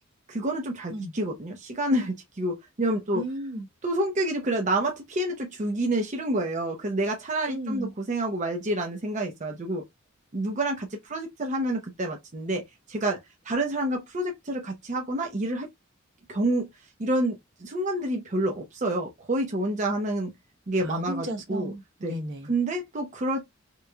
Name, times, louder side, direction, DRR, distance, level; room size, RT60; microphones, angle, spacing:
voice 1, 0.3-3.2 3.8-9.8 10.3-12.6 12.9-13.2 13.5-15.7 16.3-16.7 17.0-20.3 20.7-21.7 22.0-22.1 22.5-23.4, right 1 dB, 35° right, 0.6 m, -28 dB
voice 2, 3.1-3.7 7.5-7.9 20.8-22.5, equal, 60° right, 0.9 m, -34 dB
3.7 x 3.0 x 2.2 m
head